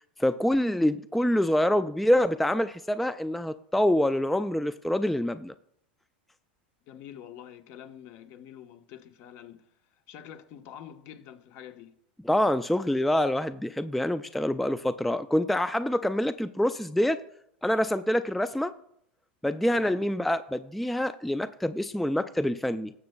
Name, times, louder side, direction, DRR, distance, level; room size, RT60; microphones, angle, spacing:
voice 1, 0.0-5.5 12.2-17.2 17.6-18.7 19.4-22.9, left 1 dB, ahead, 0.3 m, -26 dB
voice 2, 6.9-9.6 10.1-12.0 19.7-20.0, left 10 dB, 50° left, 1.0 m, -46 dB
19.0 x 6.8 x 2.2 m
hypercardioid pair, 100°, 5 cm